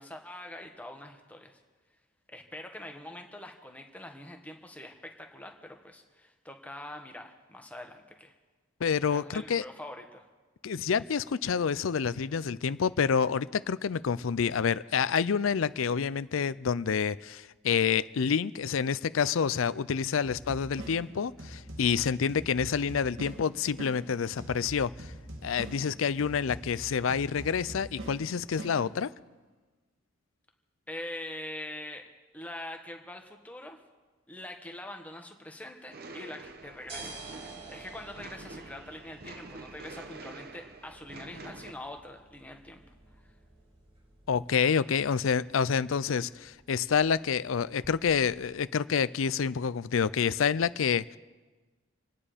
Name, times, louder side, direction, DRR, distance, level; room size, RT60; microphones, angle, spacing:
voice 1, 0.0-1.6 2.3-8.3 9.1-10.2 30.9-32.0 32.3-33.8 34.3-37.2 37.7-42.8 43.2-43.3, left 1 dB, 5° left, 1.4 m, -44 dB
voice 2, 8.8-9.6 10.6-25.1 25.4-29.1 44.3-51.2, left 6 dB, 85° left, 0.5 m, -28 dB
sound 1, 20.2-29.3, right 1 dB, 85° right, 2.4 m, -44 dB
sound 2, 35.9-41.7, right 3 dB, 50° right, 1.1 m, -47 dB
sound 3, 36.4-48.5, right 3 dB, 30° right, 2.6 m, -52 dB
28.0 x 9.8 x 5.1 m
head